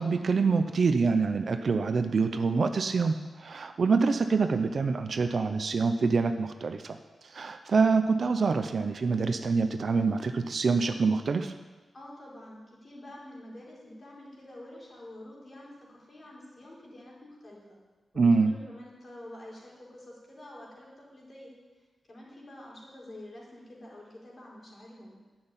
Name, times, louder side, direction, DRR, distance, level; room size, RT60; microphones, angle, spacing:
voice 1, 0.0-7.0 7.2-11.5 18.2-18.5, right 4 dB, 55° right, 8 dB, 0.8 m, -26 dB
voice 2, 11.9-17.8 18.1-21.5 22.1-25.2, left 1 dB, 35° left, -4 dB, 4.5 m, -48 dB
11.0 x 7.8 x 9.8 m, 1.2 s
wide cardioid pair, 150°, 0 cm